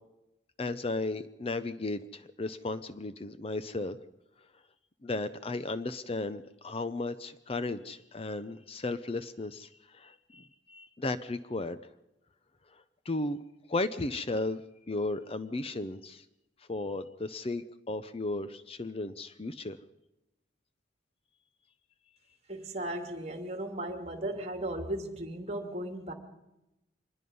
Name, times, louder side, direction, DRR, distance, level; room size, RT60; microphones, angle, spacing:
voice 1, 0.6-4.0 5.0-11.8 13.1-13.4 13.7-14.6 14.9-16.2 16.7-19.8, left 2 dB, 30° left, 12 dB, 0.6 m, -35 dB
voice 2, 22.5-26.1, right 1 dB, 35° right, 5 dB, 2.6 m, -36 dB
25.0 x 20.5 x 5.5 m, 0.93 s
head